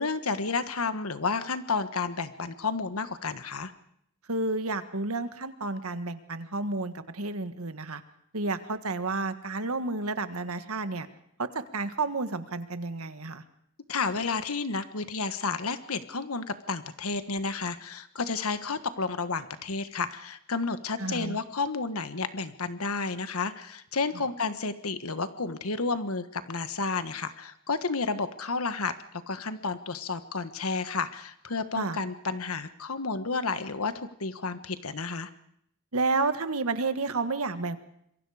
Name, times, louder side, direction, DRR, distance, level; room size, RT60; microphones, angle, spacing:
voice 1, 0.0-3.7 13.9-28.9 29.3-35.3, left 4 dB, 80° left, 11 dB, 1.4 m, -31 dB
voice 2, 4.3-8.0 8.3-11.1 11.4-13.4 21.0-21.4 24.1-24.2 31.8-32.0 35.9-37.8, right 3 dB, 80° right, 10 dB, 1.6 m, -31 dB
26.5 x 23.0 x 5.0 m, 0.72 s
head